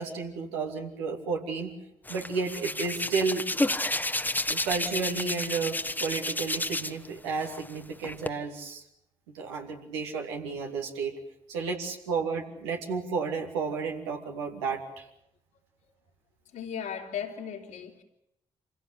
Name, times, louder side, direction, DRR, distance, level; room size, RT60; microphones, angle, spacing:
voice 1, 0.0-1.7 2.1-3.4 4.5-5.7 6.0-8.8 9.3-11.1 11.5-15.0, right 5 dB, 90° right, 1 dB, 2.6 m, -32 dB
Hands, 2.1-7.1 7.4-8.3, left 2 dB, 15° left, 1.4 m, -31 dB
voice 2, 16.5-18.0, left 8 dB, 75° left, 0 dB, 3.5 m, -36 dB
26.5 x 16.5 x 8.7 m, 0.79 s
hypercardioid pair, 45°, 14 cm